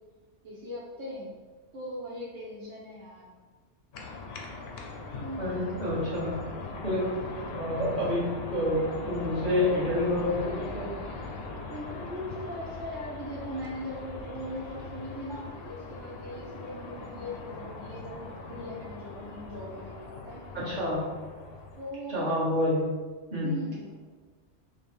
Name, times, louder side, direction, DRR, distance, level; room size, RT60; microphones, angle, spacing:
voice 1, 0.4-1.3 1.7-3.3 5.2-5.8 11.7-21.0 21.8-22.4 23.4-24.0, equal, 80° right, -5 dB, 1.1 m, -40 dB
sound 1, 3.9-21.9, left 3 dB, 70° left, 0.8 m, -40 dB
voice 2, 5.4-6.4 6.8-7.1 7.5-10.9 20.5-21.0 22.1-22.9 23.3-23.5, left 1 dB, 40° right, -8 dB, 1.4 m, -28 dB
5.1 x 2.1 x 3.1 m, 1.4 s
omnidirectional pair, 1.2 m